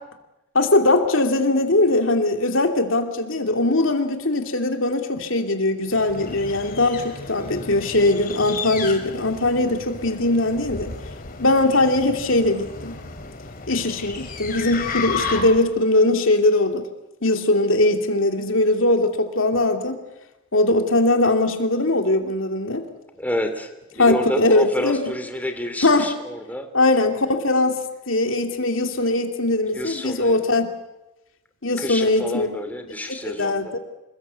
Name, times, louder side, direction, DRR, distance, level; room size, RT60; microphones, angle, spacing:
voice 1, 0.5-10.9 11.4-13.0 13.7-16.9 17.2-20.0 20.5-22.9 24.0-25.0 25.8-26.1 26.7-27.8 28.1-30.7 31.6-32.5 33.4-33.8, left 2 dB, 65° left, 5 dB, 2.8 m, -20 dB
sound 1, 5.9-15.8, left 4 dB, 45° left, 3.0 m, -33 dB
voice 2, 23.1-26.7 29.7-30.4 31.8-33.8, left 1 dB, 10° left, 7 dB, 2.9 m, -29 dB
27.5 x 21.5 x 8.4 m, 0.99 s
head